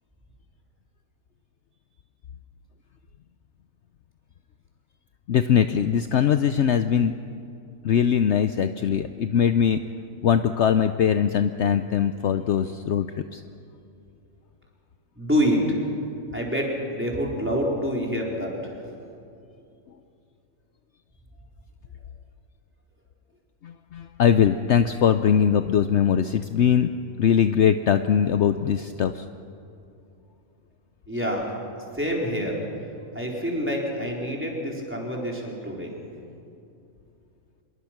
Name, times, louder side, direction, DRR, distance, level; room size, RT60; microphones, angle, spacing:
voice 1, 5.3-7.1 7.8-9.8 10.2-13.1 13.3-13.4 23.6-26.9 27.2-29.2, left 8 dB, 65° left, 10 dB, 0.9 m, -21 dB
voice 2, 15.2-15.8 16.3-18.8 31.1-31.5 31.9-32.6 33.1-36.0, equal, 10° right, -2 dB, 4.2 m, -27 dB
26.0 x 22.5 x 6.0 m, 2.7 s
omnidirectional pair, 1.4 m